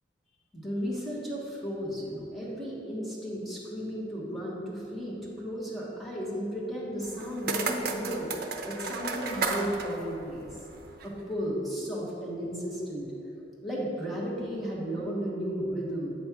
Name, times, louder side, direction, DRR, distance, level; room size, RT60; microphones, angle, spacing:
voice 1, 0.5-8.3 8.7-10.5 11.0-13.1 13.6-16.1, equal, ahead, -6 dB, 1.3 m, -34 dB
sound 1, 7.0-11.2, right 3 dB, 60° right, 0.6 m, -34 dB
8.7 x 3.2 x 5.9 m, 2.9 s
head